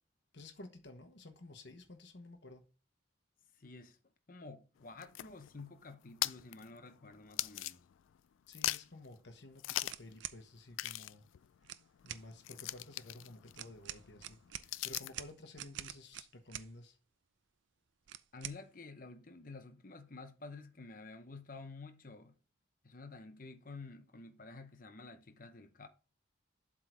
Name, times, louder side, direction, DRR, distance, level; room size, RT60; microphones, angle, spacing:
voice 1, 0.3-2.6 8.5-11.3 12.0-17.0, left 2 dB, 65° left, 1.2 m, -53 dB
voice 2, 3.6-4.0 4.3-7.8 18.3-22.4 22.8-25.9, left 3 dB, 45° left, 0.8 m, -50 dB
sound 1, 4.8-8.2 8.5-9.1 9.6-10.1 10.4-10.5 10.7-15.3, left 15 dB, 90° left, 0.3 m, -41 dB
sound 2, 9.9-10.4 11.6-12.3 13.5-16.7 18.1-18.6, right 12 dB, 80° right, 0.5 m, -46 dB
7.8 x 3.8 x 6.2 m
head